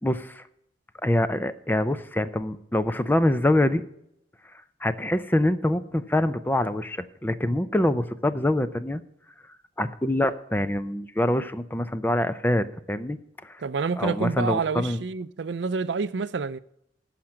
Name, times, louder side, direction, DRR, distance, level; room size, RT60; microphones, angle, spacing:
voice 1, 0.0-0.4 1.0-3.8 4.8-9.0 9.8-13.6 14.0-15.0, left 1 dB, 10° left, 0.5 m, -25 dB
voice 2, 13.6-16.6, right 5 dB, 75° right, 0.5 m, -28 dB
14.5 x 5.9 x 6.3 m
head